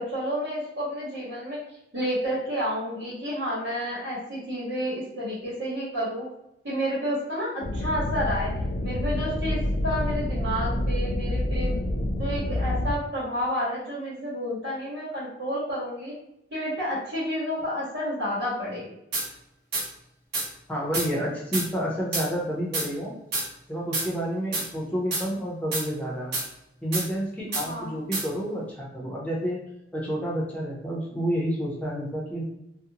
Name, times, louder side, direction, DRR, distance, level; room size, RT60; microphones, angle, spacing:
voice 1, 0.0-1.6 1.9-6.3 6.6-8.5 8.8-11.8 12.2-16.1 16.5-18.9 27.6-28.0, equal, 85° right, -10 dB, 1.1 m, -30 dB
sound 1, 7.6-12.9, left 1 dB, 60° left, 0.4 m, -27 dB
sound 2, 19.1-19.3 19.7-19.9 20.3-20.5 20.9-21.1 21.5-21.7 22.1-22.3 22.7-22.9 23.3-23.5 23.9-24.1 24.5-24.7 25.1-25.2 25.7-25.8 26.3-26.5 26.9-27.1 27.5-27.7 28.1-28.2, right 2 dB, 60° right, 0.9 m, -28 dB
voice 2, 20.7-23.1 23.7-26.3 26.8-29.6 29.9-32.4, equal, 10° left, -4 dB, 0.7 m, -29 dB
2.5 x 2.1 x 2.8 m, 0.83 s
head